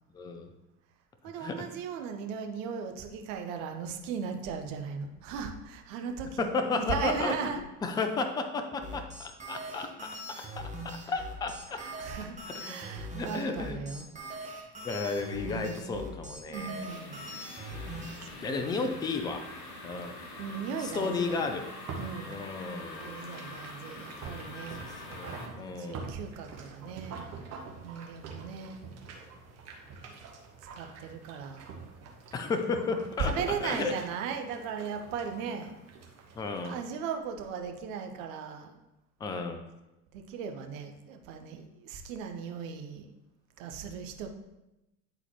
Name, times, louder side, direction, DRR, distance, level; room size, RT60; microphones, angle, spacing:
voice 1, 0.1-0.5 1.4-1.7 6.4-7.6 7.8-11.8 12.4-12.8 13.1-13.8 14.8-16.9 18.4-19.5 19.8-20.2 20.8-21.7 22.3-23.2 24.8-26.1 32.3-33.9 36.3-36.7 39.2-39.6, left 4 dB, 10° left, 6 dB, 0.4 m, -33 dB
voice 2, 1.2-7.6 10.3-10.5 11.7-14.1 14.3-14.4 15.4-16.1 16.5-17.5 18.3-19.0 20.4-21.4 22.0-22.4 23.0-24.8 25.8-27.2 27.8-28.8 30.8-31.7 33.2-35.8 36.6-38.7 40.1-43.1 43.6-44.3, right 6 dB, 60° right, 4 dB, 0.9 m, -37 dB
sound 1, 8.8-18.2, right 1 dB, 15° right, 1.2 m, -41 dB
sound 2, 16.9-25.5, left 2 dB, 35° left, 1.2 m, -45 dB
sound 3, 17.7-36.8, right 4 dB, 35° right, 1.1 m, -47 dB
9.0 x 4.0 x 2.9 m, 0.95 s
figure-of-eight pair, 75°, 45 cm